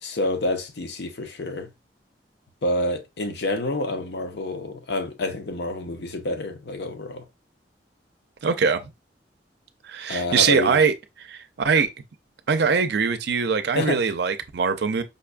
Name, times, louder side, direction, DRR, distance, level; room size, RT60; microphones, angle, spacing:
voice 1, 0.0-1.7 2.6-7.2 10.1-10.8 13.8-14.0, left 2 dB, 70° left, 0.6 m, -28 dB
voice 2, 8.4-8.9 9.8-11.9 12.5-15.0, right 5 dB, 65° right, 0.5 m, -22 dB
5.2 x 2.2 x 2.4 m
head